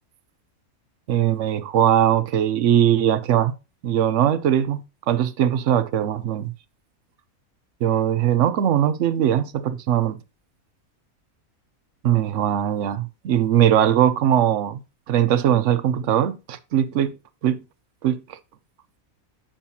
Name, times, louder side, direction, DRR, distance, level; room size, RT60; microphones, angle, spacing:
voice 1, 1.1-3.5 3.8-4.8 5.1-6.5 7.8-10.2 12.0-14.8 15.1-17.2 17.4-17.6 18.0-18.4, right 10 dB, 65° right, 0.9 m, -20 dB
8.8 x 5.5 x 2.8 m
omnidirectional pair, 1.5 m